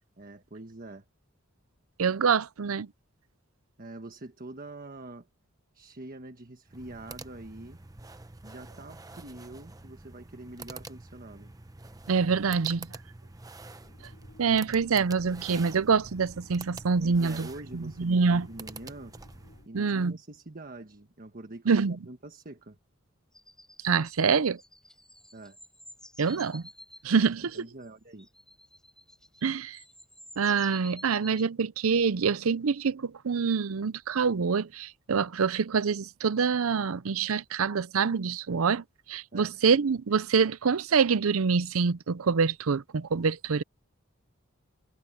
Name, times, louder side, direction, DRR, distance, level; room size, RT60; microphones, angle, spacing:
voice 1, 0.2-1.1 3.8-5.3 5.7-7.8 8.4-11.6 17.0-19.1 19.6-22.8 25.3-25.6 27.5-28.3 39.3-39.6, right 2 dB, 45° right, 1.4 m, -45 dB
voice 2, 2.0-2.9 12.1-12.9 14.4-17.5 17.7-18.5 19.7-20.2 21.7-22.0 23.8-24.6 26.2-26.6 27.0-27.6 29.4-29.8 30.4-43.6, right 5 dB, 85° right, 0.6 m, -26 dB
sound 1, 6.7-19.7, right 3 dB, 15° right, 0.8 m, -47 dB
sound 2, 13.8-19.7, left 1 dB, 80° left, 2.6 m, -57 dB
sound 3, 23.3-31.5, left 1 dB, 5° left, 5.7 m, -52 dB
head